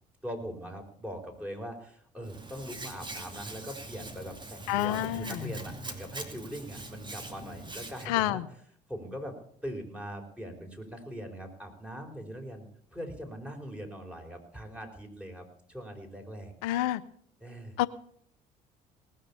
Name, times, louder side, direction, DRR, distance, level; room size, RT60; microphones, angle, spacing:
voice 1, 0.2-8.6 8.9-9.3 9.6-12.6 12.9-16.5 17.4-17.8, equal, 5° right, 2 dB, 4.7 m, -41 dB
Hands, 2.2-8.1, right 2 dB, 25° right, 2.6 m, -42 dB
voice 2, 4.7-5.4 8.1-8.4 16.6-17.0 17.8-17.9, left 15 dB, 85° left, 15 dB, 0.6 m, -28 dB
18.5 x 6.6 x 8.6 m, 0.62 s
hypercardioid pair, 65°, 19 cm